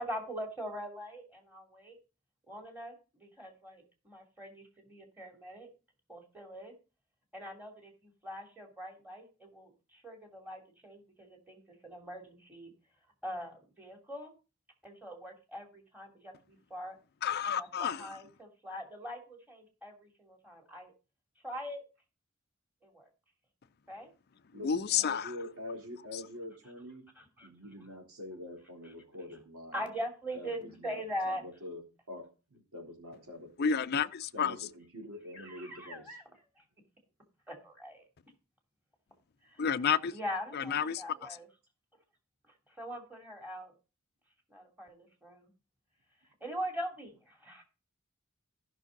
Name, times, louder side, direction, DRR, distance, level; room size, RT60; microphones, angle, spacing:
voice 1, 0.0-2.0 2.5-2.9 3.2-5.7 6.1-6.7 7.3-7.9 8.2-12.7 13.2-14.3 14.8-17.0 17.5-20.9 21.4-21.8 22.8-23.1 23.9-24.1 27.2-27.5 29.7-31.4 35.3-36.2 37.5-38.0 39.5-39.6 40.1-41.5 42.8-43.7 44.5-45.5 46.4-47.6, equal, 5° right, 2.7 m, -42 dB
voice 2, 17.2-18.2 24.6-25.3 26.1-26.2 33.6-34.6 39.6-40.2 40.5-41.4, left 7 dB, 45° left, 0.5 m, -31 dB
voice 3, 24.5-27.0 27.4-29.9 30.3-33.7 34.3-36.2, left 1 dB, 85° right, 3.7 m, -45 dB
14.5 x 6.1 x 3.9 m
head